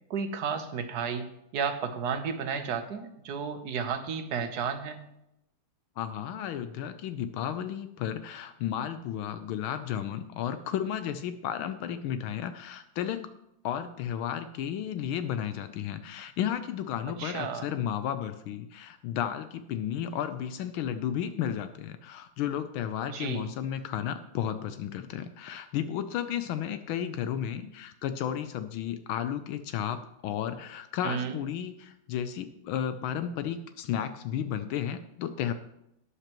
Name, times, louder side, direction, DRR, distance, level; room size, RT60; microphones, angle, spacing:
voice 1, 0.1-1.3 1.5-5.1 17.2-17.7 23.1-23.5 31.0-31.4, right 6 dB, 55° right, 7 dB, 1.4 m, -32 dB
voice 2, 6.0-13.3 13.6-35.5, left 9 dB, 80° left, 9 dB, 1.4 m, -33 dB
12.5 x 9.9 x 3.0 m, 0.82 s
omnidirectional pair, 2.3 m